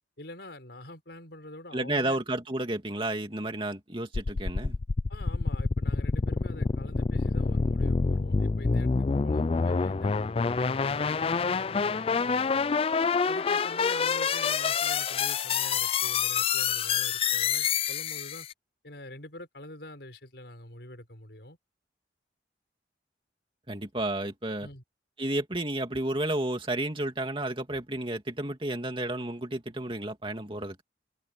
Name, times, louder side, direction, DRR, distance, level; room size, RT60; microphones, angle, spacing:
voice 1, 0.2-2.2 5.1-12.8 13.3-18.5 18.8-21.6 24.6-24.8, left 1 dB, 65° left, 5.3 m, -45 dB
voice 2, 1.7-4.8 23.7-24.7 25.2-30.8, right 1 dB, 30° right, 2.6 m, -31 dB
sound 1, 4.1-18.5, left 5 dB, 30° left, 0.3 m, -27 dB
head